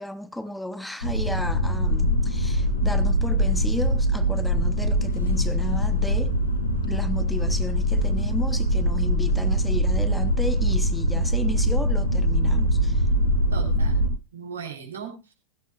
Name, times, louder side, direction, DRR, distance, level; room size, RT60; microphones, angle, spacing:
voice 1, 0.0-6.3 6.9-13.1, left 1 dB, 5° left, 0.6 m, -33 dB
sound 1, 1.0-14.1, equal, 80° left, 3.3 m, -23 dB
voice 2, 13.5-15.3, right 6 dB, 70° right, 3.5 m, -38 dB
15.5 x 15.5 x 2.4 m
figure-of-eight pair, 90°, 0 cm